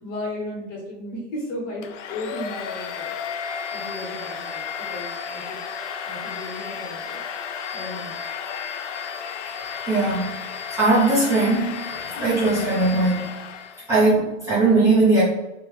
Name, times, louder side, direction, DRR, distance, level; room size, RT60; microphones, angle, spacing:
voice 1, 0.0-3.1 3.7-5.6 6.0-7.2 7.7-8.1, left 1 dB, 25° left, -3 dB, 0.9 m, -34 dB
Domestic sounds home sounds, 1.8-13.9, left 7 dB, 80° left, 0.5 m, -33 dB
voice 2, 9.9-10.3 10.8-11.8 12.2-13.3 13.9-15.2, right 2 dB, 10° right, -12 dB, 0.6 m, -19 dB
3.7 x 2.1 x 3.0 m, 1.0 s
hypercardioid pair, 150°, 36 cm